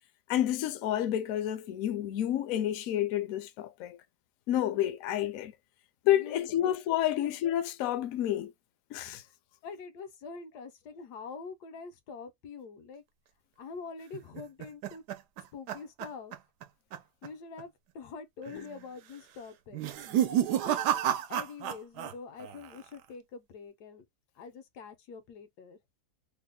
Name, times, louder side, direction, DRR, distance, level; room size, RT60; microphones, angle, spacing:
voice 1, 0.3-4.0 4.5-5.5 6.1-8.5 8.9-9.2 18.6-18.7, left 12 dB, 70° left, 0.9 m, -29 dB
voice 2, 6.0-6.7 7.2-7.3 9.1-9.3 9.6-13.0 13.6-15.0 15.5-16.4 17.2-19.9 20.6-20.8 21.3-24.0 24.3-25.8, left 5 dB, 85° left, 1.3 m, -45 dB
sound 1, 14.1-16.7 16.9-17.3 17.6-17.7 18.4-18.8 19.7-22.1 22.4-23.0, right 10 dB, 80° right, 1.2 m, -31 dB
3.3 x 2.1 x 3.6 m
omnidirectional pair, 1.7 m